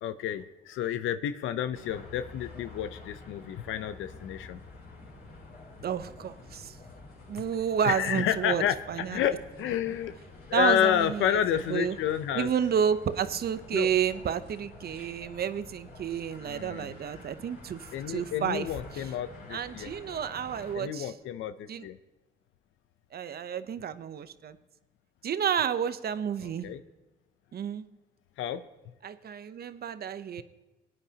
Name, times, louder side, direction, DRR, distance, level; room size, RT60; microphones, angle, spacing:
voice 1, 0.0-4.6 7.8-10.1 10.5-12.5 13.7-13.9 16.5-16.9 17.9-19.9 20.7-22.0 26.4-26.8 28.4-28.6, left 10 dB, 80° left, 10 dB, 0.6 m, -30 dB
sound 1, 1.7-20.8, left 2 dB, 60° left, 4.9 m, -48 dB
voice 2, 5.8-6.7 7.3-9.2 10.5-11.4 11.7-12.0 12.3-17.8 18.1-18.7 19.5-21.1 21.7-21.9 23.1-24.6 25.2-26.7 27.5-27.9 29.0-30.4, right 8 dB, 50° right, 13 dB, 0.7 m, -30 dB
19.5 x 9.8 x 2.8 m, 1.1 s
cardioid pair, 90°, 20 cm